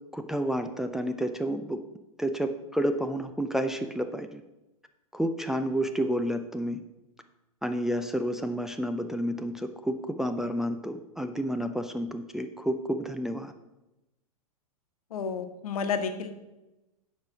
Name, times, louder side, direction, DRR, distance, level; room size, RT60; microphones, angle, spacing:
voice 1, 0.1-1.8 2.2-4.4 5.1-6.8 7.6-13.5, equal, ahead, 6 dB, 0.5 m, -30 dB
voice 2, 15.1-16.3, left 5 dB, 70° left, 8 dB, 1.2 m, -31 dB
9.7 x 5.0 x 6.1 m, 0.98 s
hypercardioid pair, 115°, 19 cm